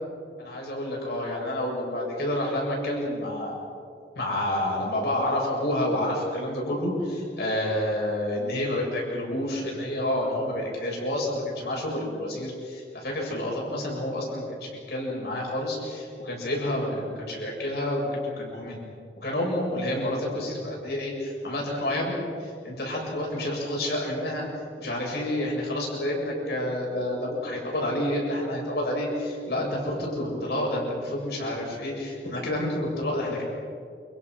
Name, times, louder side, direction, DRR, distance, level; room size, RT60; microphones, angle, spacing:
voice 1, 0.4-3.5 4.2-18.8 19.2-24.5 24.8-33.4, left 1 dB, 70° left, -2 dB, 7.3 m, -29 dB
29.0 x 27.0 x 6.2 m, 2.4 s
head